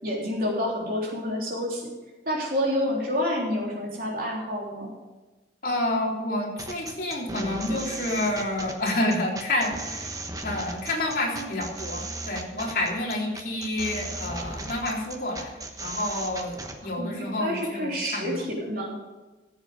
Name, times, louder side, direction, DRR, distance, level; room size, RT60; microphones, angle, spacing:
voice 1, 0.0-1.9 2.3-4.9 17.0-19.0, left 1 dB, 55° right, -2 dB, 3.7 m, -28 dB
voice 2, 5.6-10.1 10.4-15.5 15.8-18.3, left 1 dB, 50° left, -3 dB, 3.8 m, -29 dB
sound 1, 6.6-16.8, right 2 dB, 20° right, 1.1 m, -36 dB
14.0 x 8.1 x 5.2 m, 1.2 s
head